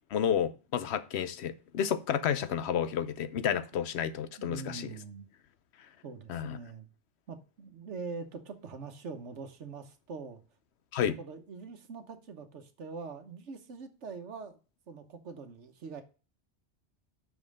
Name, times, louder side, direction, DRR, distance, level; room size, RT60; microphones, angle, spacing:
voice 1, 0.1-4.9 6.3-6.6 10.9-11.1, left 8 dB, 70° left, 1.0 m, -31 dB
voice 2, 4.4-5.3 6.0-6.9 7.3-10.4 11.0-14.6 14.9-16.0, right 4 dB, 80° right, 1.3 m, -43 dB
6.2 x 5.4 x 6.4 m
omnidirectional pair, 1.2 m